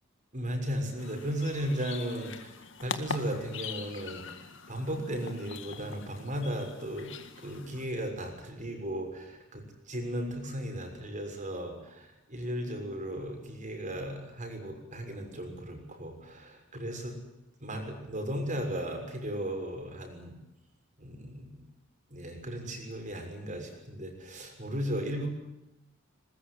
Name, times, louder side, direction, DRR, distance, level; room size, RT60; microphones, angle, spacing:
voice 1, 0.3-7.1 7.4-17.2 17.6-20.3 21.0-21.6 22.1-25.3, equal, 40° right, 3 dB, 6.6 m, -36 dB
sound 1, 1.0-7.8, left 5 dB, 65° left, 2.1 m, -42 dB
21.5 x 21.0 x 9.9 m, 0.90 s
head